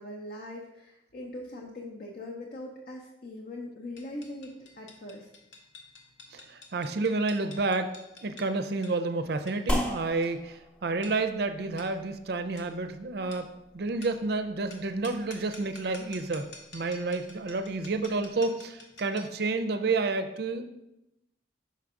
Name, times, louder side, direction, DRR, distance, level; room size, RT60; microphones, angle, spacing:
voice 1, 0.0-5.3, left 1 dB, 50° left, 0 dB, 0.6 m, -41 dB
sound 1, 4.0-19.4, left 3 dB, 80° left, 1.0 m, -51 dB
voice 2, 6.3-7.9 8.2-20.6, right 3 dB, 60° right, 8 dB, 0.5 m, -30 dB
sound 2, 9.7-18.4, equal, 5° left, 0.5 m, -39 dB
5.6 x 4.6 x 3.6 m, 0.89 s
head